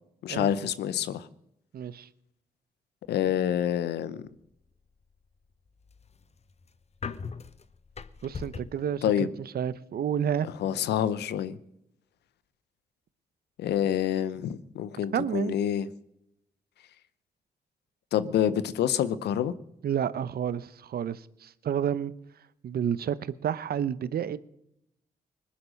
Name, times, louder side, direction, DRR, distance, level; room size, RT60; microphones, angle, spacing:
voice 1, 0.2-1.3 3.1-4.2 9.0-9.3 10.6-11.6 13.6-15.9 18.1-19.5, left 10 dB, 85° left, 0.8 m, -27 dB
voice 2, 1.7-2.1 8.2-9.3 9.5-10.5 15.1-15.5 19.8-22.1 22.6-24.4, right 9 dB, 70° right, 0.8 m, -30 dB
sound 1, 5.7-8.9, left 5 dB, 40° left, 0.9 m, -40 dB
20.0 x 10.5 x 6.5 m
supercardioid pair, 50°, 17 cm